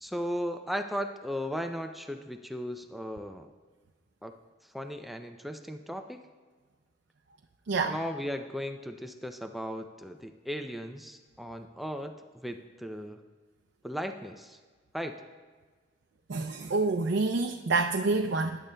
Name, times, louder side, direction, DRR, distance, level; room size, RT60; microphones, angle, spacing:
voice 1, 0.0-3.5 4.2-4.4 4.7-6.2 7.8-13.2 13.8-14.6 14.9-15.2, equal, ahead, 6 dB, 0.4 m, -36 dB
voice 2, 16.3-18.6, right 3 dB, 85° right, 5 dB, 0.5 m, -27 dB
19.0 x 9.9 x 2.2 m, 1.4 s
head